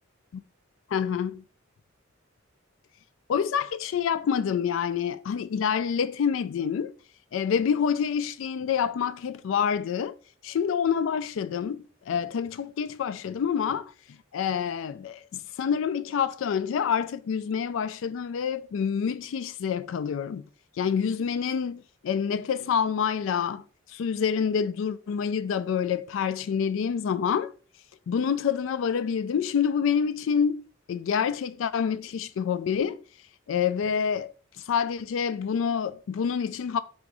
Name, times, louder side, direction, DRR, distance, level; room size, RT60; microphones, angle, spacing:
voice 1, 0.9-1.4 3.3-6.9 7.3-10.1 10.4-13.9 14.3-20.5 20.8-27.5 28.1-33.0 33.5-34.3 34.6-36.8, left 7 dB, 70° left, 0.3 m, -27 dB
3.8 x 2.6 x 4.6 m
head